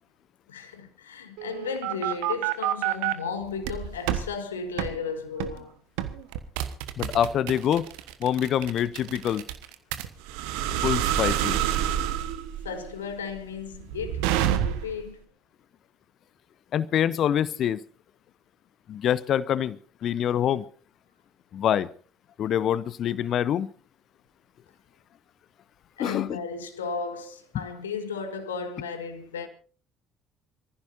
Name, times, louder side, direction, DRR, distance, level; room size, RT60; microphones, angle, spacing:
voice 1, 0.5-5.8 12.6-15.2 26.0-29.5, left 5 dB, 75° left, 1.7 m, -34 dB
sound 1, 1.4-3.1 3.6-4.3 4.8-4.9 5.4-5.6 6.0-15.0, right 11 dB, 65° right, 1.2 m, -28 dB
voice 2, 7.0-7.9 8.2-9.4 10.8-11.6 16.7-17.8 18.9-20.6 21.5-21.9 22.4-23.7 26.0-26.4, left 10 dB, 50° left, 0.7 m, -25 dB
27.5 x 15.0 x 2.7 m
figure-of-eight pair, 50°, 0 cm